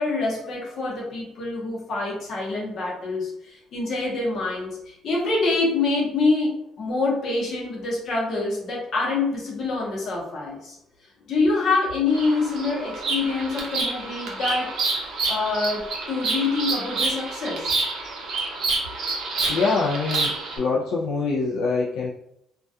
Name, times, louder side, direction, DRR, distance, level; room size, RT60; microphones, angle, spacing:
voice 1, 0.0-10.8 11.3-17.8, left 3 dB, 45° left, -4 dB, 0.8 m, -26 dB
Bird vocalization bird call bird song, 12.1-20.6, right 3 dB, 55° right, 0.6 m, -28 dB
voice 2, 19.5-22.1, left 4 dB, 75° left, -3 dB, 0.3 m, -24 dB
2.2 x 2.2 x 2.6 m, 0.78 s
cardioid pair, 165°, 0 cm